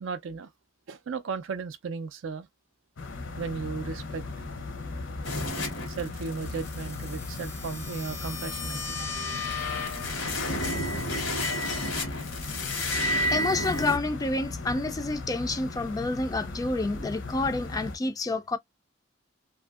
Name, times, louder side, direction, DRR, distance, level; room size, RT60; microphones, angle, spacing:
voice 1, 0.0-0.5 0.9-2.5 3.4-4.2 5.9-9.4, right 5 dB, 75° right, 0.4 m, -35 dB
sound 1, 3.0-18.0, left 3 dB, 70° left, 0.7 m, -38 dB
sound 2, 5.2-14.0, left 1 dB, 85° left, 1.0 m, -32 dB
voice 2, 13.3-18.6, left 2 dB, 20° left, 0.3 m, -29 dB
2.6 x 2.6 x 2.3 m
head